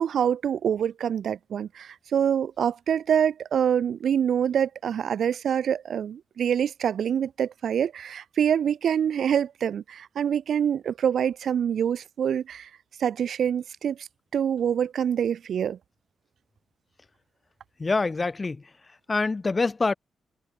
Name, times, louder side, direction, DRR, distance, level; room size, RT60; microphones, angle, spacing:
voice 1, 0.0-12.7 13.0-15.8, right 8 dB, 70° right, 0.8 m, -25 dB
voice 2, 17.8-18.6 19.1-19.9, left 3 dB, 30° left, 0.7 m, -25 dB
cardioid pair, 95°, 0 cm